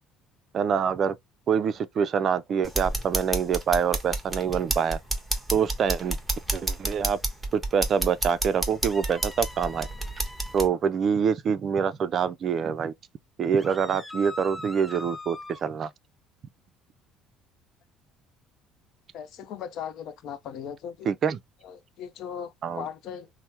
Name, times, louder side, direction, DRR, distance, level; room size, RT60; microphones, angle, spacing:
voice 1, 0.5-1.2 1.5-5.0 5.5-6.2 6.5-7.2 7.5-9.9 10.5-12.9 13.4-15.9 21.1-21.4 22.6-22.9, right 7 dB, 50° right, 0.4 m, -25 dB
sound 1, 2.6-10.7, right 2 dB, 10° right, 1.0 m, -30 dB
sound 2, 8.9-10.7 13.6-15.6, left 1 dB, 10° left, 0.5 m, -42 dB
voice 2, 19.1-21.1 21.6-23.3, left 8 dB, 65° left, 0.5 m, -38 dB
3.2 x 2.0 x 2.8 m
supercardioid pair, 90°, 0 cm